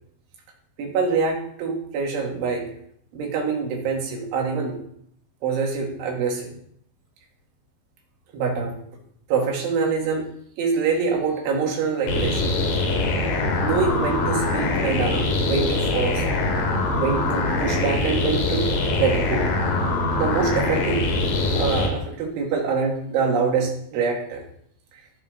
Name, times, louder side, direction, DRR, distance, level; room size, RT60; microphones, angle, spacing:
voice 1, 0.8-2.7 3.1-4.8 5.4-6.5 8.3-8.8 9.3-10.3 10.6-12.5 13.6-16.2 16.9-18.7 19.0-19.6 20.1-21.1 21.5-24.4, right 5 dB, 85° right, 0 dB, 4.7 m, -25 dB
sound 1, 12.1-21.9, left 2 dB, 70° left, 4.2 m, -23 dB
21.0 x 7.0 x 4.0 m, 0.67 s
omnidirectional pair, 5.3 m